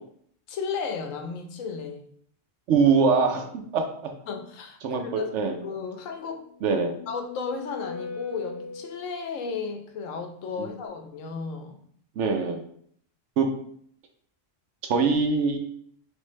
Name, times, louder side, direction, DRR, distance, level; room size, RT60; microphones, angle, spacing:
voice 1, 0.5-2.0 4.3-5.3 5.6-6.4 7.1-11.8, left 5 dB, 80° left, 5 dB, 1.1 m, -34 dB
voice 2, 2.7-3.8 4.8-5.6 6.6-7.0 10.6-10.7 12.2-12.6 13.4-13.5 14.9-15.6, right 5 dB, 70° right, 4 dB, 0.9 m, -23 dB
sound 1, 6.4-9.4, left 4 dB, 15° right, 0.5 m, -39 dB
4.4 x 3.3 x 3.1 m, 0.63 s
omnidirectional pair, 1.3 m